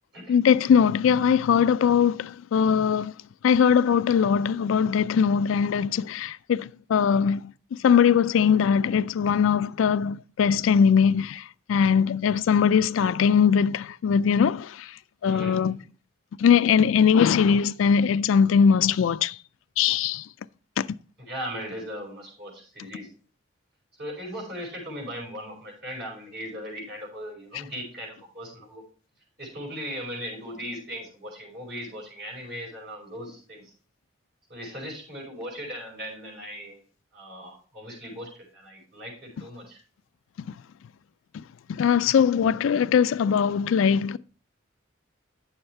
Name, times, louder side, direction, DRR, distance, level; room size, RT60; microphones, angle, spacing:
voice 1, 0.3-3.1 3.4-7.5 7.8-14.9 15.2-15.8 16.4-19.4 19.8-20.3 20.8-20.9 40.5-40.6 41.3-41.4 41.7-44.2, left 7 dB, 80° left, 0.3 m, -21 dB
voice 2, 15.3-15.8 21.2-23.1 24.0-28.8 29.4-33.7 34.5-36.8 37.1-39.8, equal, 55° right, 5.4 m, -38 dB
9.7 x 7.1 x 3.2 m
head